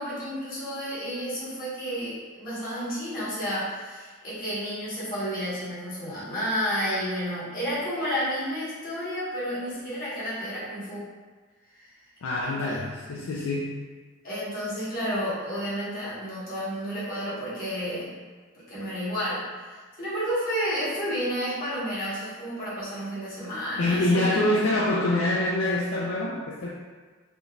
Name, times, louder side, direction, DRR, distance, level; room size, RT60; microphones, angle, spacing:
voice 1, 0.0-11.1 11.8-11.9 12.4-12.9 14.2-18.1 18.7-24.4, equal, 45° left, -10 dB, 1.2 m, -31 dB
voice 2, 12.2-13.8 23.8-26.7, left 1 dB, 70° left, -4 dB, 0.4 m, -25 dB
3.6 x 2.6 x 2.3 m, 1.4 s
head